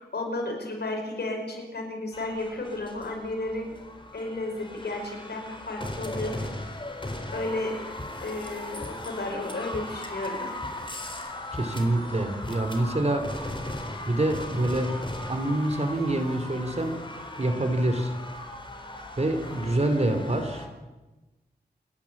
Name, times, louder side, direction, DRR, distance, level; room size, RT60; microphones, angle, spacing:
voice 1, 0.0-3.7 4.1-6.5 7.3-7.8 8.2-10.6, left 2 dB, 75° left, 2 dB, 5.6 m, -33 dB
sound 1, 2.1-20.7, left 1 dB, 30° left, 4.1 m, -38 dB
voice 2, 11.5-13.2 14.1-14.9 15.3-16.9 17.4-18.1 19.2-20.7, right 1 dB, 40° right, 7 dB, 3.1 m, -26 dB
28.0 x 12.0 x 8.5 m, 1.1 s
wide cardioid pair, 75°, 17 cm